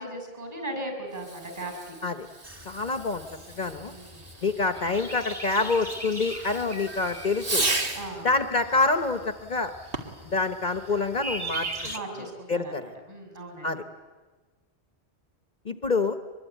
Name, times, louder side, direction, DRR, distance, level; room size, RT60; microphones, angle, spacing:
voice 1, 0.0-1.9 3.8-4.3 7.9-8.3 11.8-13.7, right 1 dB, 35° right, 5 dB, 6.7 m, -38 dB
Fireworks, 1.1-8.2 9.8-10.3, right 2 dB, 55° right, 2.3 m, -35 dB
sound 1, 2.4-12.0, right 2 dB, 20° right, 1.7 m, -40 dB
voice 2, 2.7-3.2 3.6-3.9 4.4-7.6 8.2-9.7 10.2-11.9 12.5-12.9 13.6-13.8 15.6-16.2, left 3 dB, 45° left, 9 dB, 1.1 m, -26 dB
24.5 x 22.0 x 9.3 m, 1.3 s
omnidirectional pair, 1.1 m